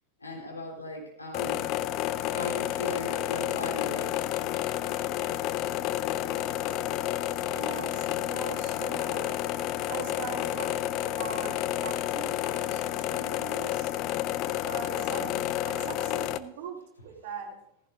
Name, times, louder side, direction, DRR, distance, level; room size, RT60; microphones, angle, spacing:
voice 1, 0.2-1.7 2.3-4.2 15.2-15.5, left 1 dB, 80° left, -1 dB, 3.8 m, -38 dB
sound 1, 1.3-16.4, left 13 dB, 40° left, 0.5 m, -30 dB
voice 2, 7.5-9.3 9.9-13.9 14.6-17.6, right 6 dB, 50° right, 0 dB, 2.8 m, -41 dB
17.0 x 15.0 x 2.6 m, 0.75 s
figure-of-eight pair, 90°, 0 cm